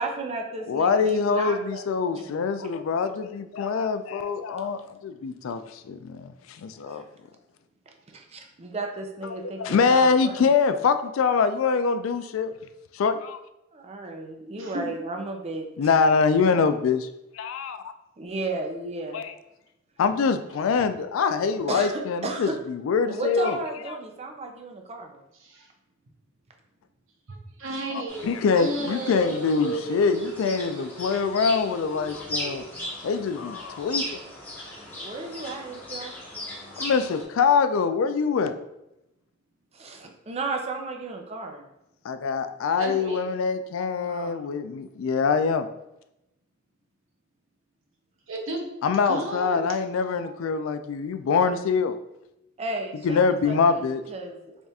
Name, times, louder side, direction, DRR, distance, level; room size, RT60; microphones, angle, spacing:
voice 1, 0.0-2.4 6.8-7.0 8.6-10.4 13.7-15.7 18.2-19.3 21.7-22.6 23.1-25.2 35.0-36.1 39.7-41.7 44.0-44.5 52.6-54.6, right 2 dB, 30° right, 3 dB, 0.5 m, -34 dB
voice 2, 0.7-7.0 9.2-12.5 12.9-13.4 15.8-17.1 17.3-17.8 19.1-19.3 20.0-23.6 28.2-32.6 33.0-34.2 36.8-38.5 42.0-45.7 48.8-52.0 53.0-54.0, left 5 dB, 90° left, 9 dB, 0.3 m, -24 dB
voice 3, 14.6-14.9 25.4-25.7 27.3-31.5 31.9-32.0 32.4-32.5 42.8-43.3 48.3-48.7 49.0-49.6, right 2 dB, 80° right, 1 dB, 0.8 m, -34 dB
sound 1, 28.1-37.2, left 1 dB, 10° left, 1.0 m, -37 dB
3.5 x 2.4 x 4.0 m, 0.88 s
head